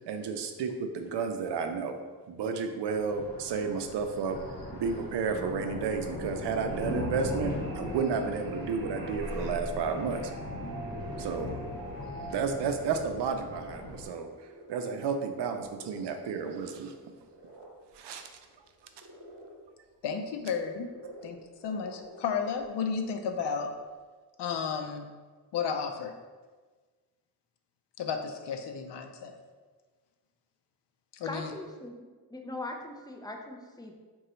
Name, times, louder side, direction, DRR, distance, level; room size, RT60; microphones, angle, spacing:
voice 1, 0.1-2.0 2.3-4.4 4.7-10.2 11.2-11.5 12.3-16.9 17.9-18.3 21.0-21.2, right 5 dB, 85° right, 6 dB, 0.5 m, -32 dB
Thunder, 2.9-14.1, left 1 dB, 60° left, 1.0 m, -39 dB
sound 1, 6.7-12.3, right 1 dB, 60° right, 0.8 m, -44 dB
sound 2, 10.7-24.0, right 1 dB, 35° right, 1.0 m, -52 dB
voice 2, 20.0-20.9 21.2-21.4 21.6-23.7 24.4-25.1 25.5-26.1 28.0-29.3 31.1-31.5, left 6 dB, 85° left, 5 dB, 0.5 m, -33 dB
voice 3, 31.2-32.0 32.3-34.0, left 2 dB, 10° left, 2 dB, 0.4 m, -40 dB
3.8 x 2.3 x 4.2 m, 1.4 s
cardioid pair, 95°, 41 cm